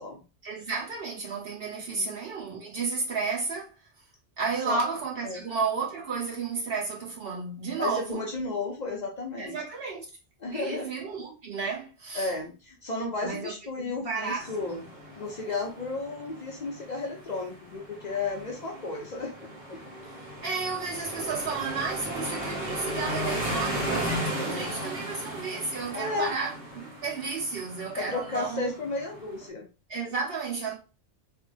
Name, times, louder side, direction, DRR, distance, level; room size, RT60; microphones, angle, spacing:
voice 1, 0.4-3.7 4.4-8.2 9.4-10.1 10.5-12.3 13.2-14.9 20.4-28.7 29.9-30.7, right 4 dB, 60° right, 1.2 m, -32 dB
voice 2, 7.8-9.6 10.4-10.9 12.1-14.8 15.2-19.3 19.7-19.8 24.2-24.8 25.9-26.3 28.0-29.7, left 3 dB, 45° left, 0.7 m, -33 dB
sound 1, 14.4-29.5, right 1 dB, 80° right, 1.5 m, -36 dB
3.4 x 2.9 x 2.5 m
omnidirectional pair, 1.1 m